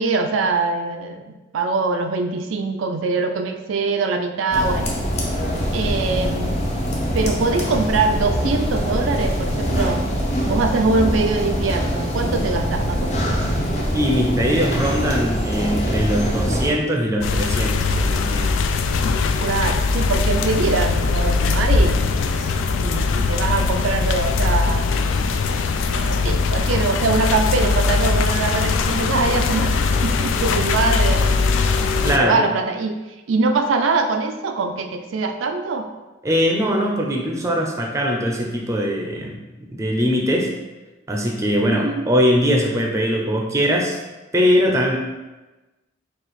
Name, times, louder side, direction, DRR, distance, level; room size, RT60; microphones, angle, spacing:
voice 1, 0.0-5.0 5.7-6.6 7.1-10.1 10.4-13.4 19.4-22.0 22.4-22.5 22.8-24.9 25.9-29.7 30.0-31.5 32.1-33.0 33.3-35.9 41.7-42.1, right 3 dB, 85° right, 6 dB, 0.4 m, -23 dB
sound 1, 4.5-16.7, equal, 35° left, 0.7 m, -23 dB
voice 2, 13.9-18.5 32.0-32.4 36.2-39.4 39.7-40.5 41.1-44.0 44.3-45.0, equal, 15° right, 1 dB, 0.5 m, -21 dB
sound 2, 17.2-32.2, left 4 dB, 80° left, 0.3 m, -20 dB
4.7 x 2.4 x 4.1 m, 1.1 s
head